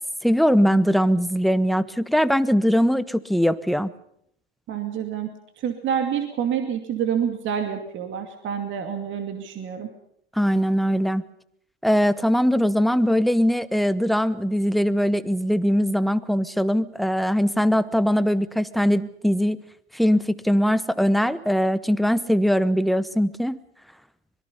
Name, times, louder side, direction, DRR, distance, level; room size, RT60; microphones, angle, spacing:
voice 1, 0.2-3.9 10.4-11.2 11.8-19.6 19.9-23.6, equal, ahead, 15 dB, 0.8 m, -21 dB
voice 2, 4.7-5.3 5.6-9.9, right 8 dB, 35° right, 6 dB, 2.6 m, -27 dB
25.0 x 22.0 x 5.5 m, 0.70 s
hypercardioid pair, 100°, 33 cm